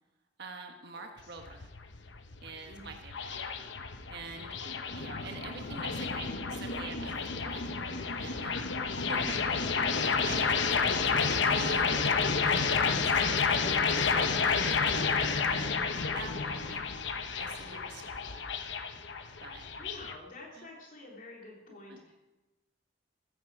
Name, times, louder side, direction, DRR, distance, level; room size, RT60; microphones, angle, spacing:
voice 1, 0.4-1.7 2.4-3.4 4.1-4.5 4.9-16.8 17.1-18.5 19.4-19.6 20.6-20.7 21.9-22.0, right 3 dB, 55° right, 3 dB, 1.4 m, -46 dB
voice 2, 1.0-1.3 2.7-2.9 4.3-4.7 17.6-18.0 19.8-22.1, left 2 dB, 45° left, -2 dB, 3.3 m, -50 dB
sound 1, 1.2-20.2, left 5 dB, 65° left, 1.0 m, -30 dB
15.5 x 14.0 x 4.9 m, 1.1 s
head